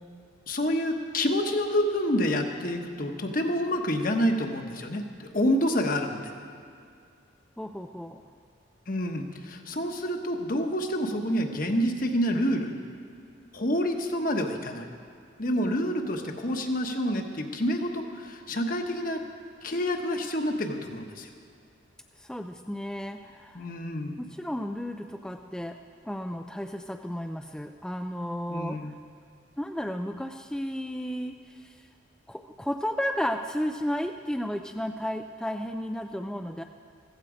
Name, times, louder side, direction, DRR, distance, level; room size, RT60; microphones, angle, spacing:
voice 1, 0.5-6.2 8.9-12.7 13.5-14.9 15.4-19.2 19.6-21.3 23.5-24.1 28.5-28.9, equal, 45° left, 4 dB, 1.1 m, -28 dB
voice 2, 7.6-8.2 22.2-23.6 24.2-25.8 26.0-29.0 29.6-31.9 32.3-36.6, equal, 5° left, 5 dB, 0.3 m, -33 dB
15.0 x 15.0 x 5.0 m, 2.3 s
head